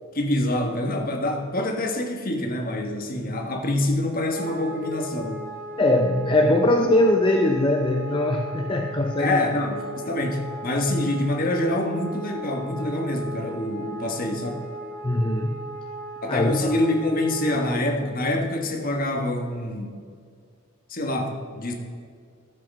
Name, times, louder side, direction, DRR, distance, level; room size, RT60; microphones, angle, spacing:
voice 1, 0.1-5.4 9.2-14.7 16.2-20.0 20.9-21.7, left 1 dB, 40° left, 3 dB, 1.3 m, -26 dB
Wind instrument woodwind instrument, 4.3-17.8, right 1 dB, 60° right, 2.6 m, -37 dB
voice 2, 5.8-9.4 15.0-15.7 16.3-16.7, left 1 dB, 25° left, 2 dB, 0.5 m, -21 dB
12.5 x 7.7 x 5.4 m, 2.1 s
head